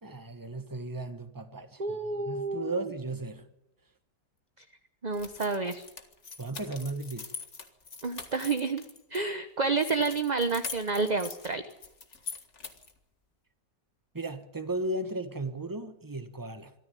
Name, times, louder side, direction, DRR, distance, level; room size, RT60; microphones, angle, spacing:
voice 1, 0.0-2.0 2.2-3.5 6.4-7.3 14.1-16.7, right 2 dB, 15° right, 1.3 m, -35 dB
voice 2, 1.8-2.9 5.0-5.8 8.0-8.8 9.1-11.6, right 4 dB, 30° right, 1.0 m, -29 dB
sound 1, 5.1-9.2 9.8-13.0, left 4 dB, 45° left, 2.1 m, -43 dB
24.5 x 13.5 x 9.3 m
omnidirectional pair, 1.8 m